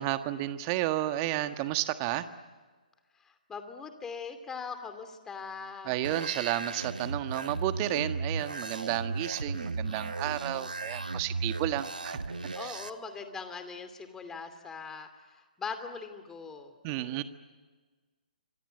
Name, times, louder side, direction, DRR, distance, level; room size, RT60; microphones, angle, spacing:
voice 1, 0.0-2.3 5.8-12.2 12.6-12.8 16.8-17.2, right 14 dB, 30° right, 9 dB, 1.5 m, -32 dB
voice 2, 3.2-6.0 12.5-17.2, left 5 dB, 10° left, 8 dB, 2.6 m, -41 dB
sound 1, 6.0-12.9, right 3 dB, 80° right, 1.5 m, -36 dB
28.5 x 25.5 x 8.0 m, 1.4 s
figure-of-eight pair, 135°, 5 cm